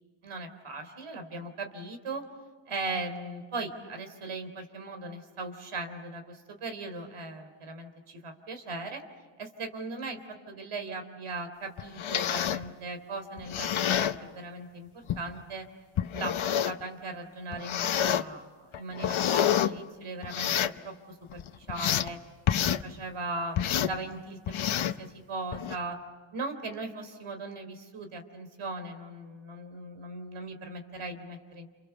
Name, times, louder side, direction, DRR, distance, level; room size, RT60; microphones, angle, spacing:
voice 1, 0.2-2.2 2.7-9.0 9.4-15.7 16.1-20.5 20.8-20.9 21.3-22.2 22.6-26.0 26.3-31.7, right 2 dB, 90° right, 7 dB, 3.5 m, -38 dB
sound 1, 11.8-12.7 13.4-14.2 15.1-15.2 16.0-16.8 17.5-18.2 18.7-19.7 20.2-20.8 21.3-22.1 22.5-22.8 23.6-24.0 24.5-25.0 25.5-25.8, left 10 dB, 75° left, 0.9 m, -28 dB
29.5 x 29.0 x 6.9 m, 1.4 s
wide cardioid pair, 110°, 48 cm